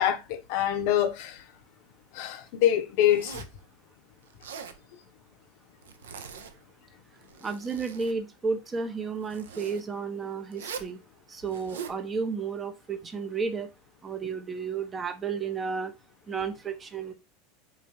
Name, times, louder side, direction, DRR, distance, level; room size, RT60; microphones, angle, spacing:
voice 1, 0.0-1.5 2.1-3.4, left 11 dB, 55° left, 0.6 m, -25 dB
Zipper (clothing), 3.0-3.6 4.3-4.8 5.8-6.6 7.2-8.2 9.2-9.8 10.5-10.9 11.5-12.0, right 7 dB, 70° right, 0.4 m, -42 dB
voice 2, 7.4-11.0 11.3-13.7 14.0-15.9 16.3-17.1, right 5 dB, 20° right, 0.6 m, -32 dB
3.9 x 2.5 x 2.9 m
figure-of-eight pair, 80°, 0 cm